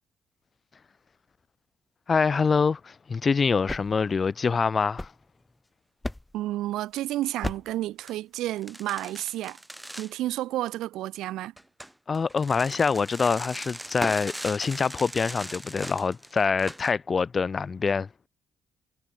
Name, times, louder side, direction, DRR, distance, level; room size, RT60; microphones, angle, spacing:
voice 1, 2.1-5.1 12.1-18.1, left 5 dB, 35° left, 0.4 m, -25 dB
sound 1, 3.5-5.6 6.0-6.5 7.4-7.9, left 1 dB, 10° left, 0.9 m, -37 dB
voice 2, 6.3-9.6 10.0-11.5, right 15 dB, 90° right, 0.4 m, -31 dB
sound 2, 7.6-7.7 8.1-8.2 8.6-10.1 11.6-16.9, right 1 dB, 5° right, 1.7 m, -39 dB
cardioid pair, 90°, 0 cm